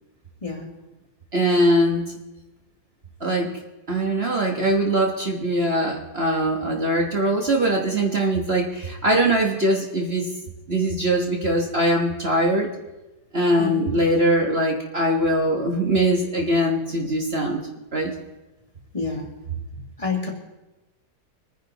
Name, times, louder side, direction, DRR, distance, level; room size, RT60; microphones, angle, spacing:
voice 1, 1.3-2.0 3.2-3.5 3.9-10.3 10.7-12.7 13.3-18.1, right 1 dB, 40° right, 1 dB, 1.5 m, -22 dB
voice 2, 18.9-19.3 20.0-20.3, left 4 dB, 20° left, -1 dB, 2.3 m, -28 dB
24.5 x 10.0 x 4.1 m, 1.0 s
omnidirectional pair, 1.7 m